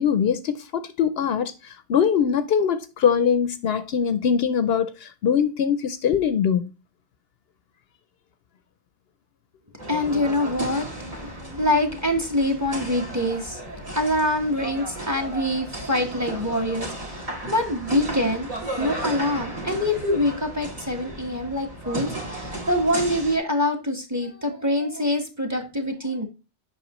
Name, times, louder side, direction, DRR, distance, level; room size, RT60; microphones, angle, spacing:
voice 1, 0.0-6.7, left 7 dB, 70° left, 0.8 m, -22 dB
voice 2, 9.8-10.9 11.2-18.5 18.8-26.3, left 1 dB, 15° right, 1.3 m, -25 dB
sound 1, 9.8-23.4, right 1 dB, 35° right, 1.8 m, -35 dB
7.9 x 5.6 x 3.0 m
omnidirectional pair, 1.1 m